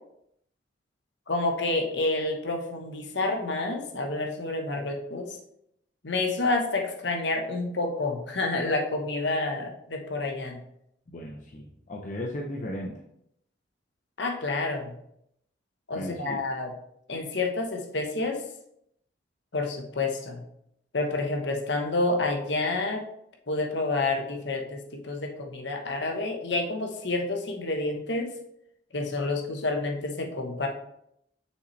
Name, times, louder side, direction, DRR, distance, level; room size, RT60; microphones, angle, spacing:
voice 1, 1.3-5.4 6.0-10.6 14.2-14.9 15.9-16.7 17.1-18.4 19.5-20.4 20.9-23.1 23.5-28.3 28.9-30.7, left 2 dB, 70° left, 2 dB, 1.1 m, -29 dB
voice 2, 11.1-13.0 15.9-16.4, left 1 dB, 40° left, 0 dB, 0.6 m, -36 dB
6.5 x 5.5 x 3.2 m, 0.75 s
head